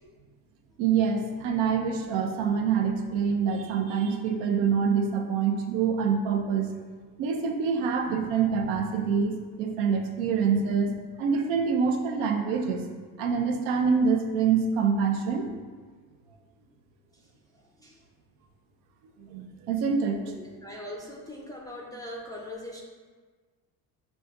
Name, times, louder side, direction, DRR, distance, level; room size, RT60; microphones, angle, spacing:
voice 1, 0.8-6.7 7.2-12.9 13.2-15.5 19.2-20.2, right 6 dB, 85° right, 4 dB, 0.6 m, -26 dB
voice 2, 20.2-22.8, left 1 dB, 10° left, -3 dB, 0.3 m, -41 dB
6.0 x 2.7 x 2.3 m, 1.5 s
supercardioid pair, 95°, 42 cm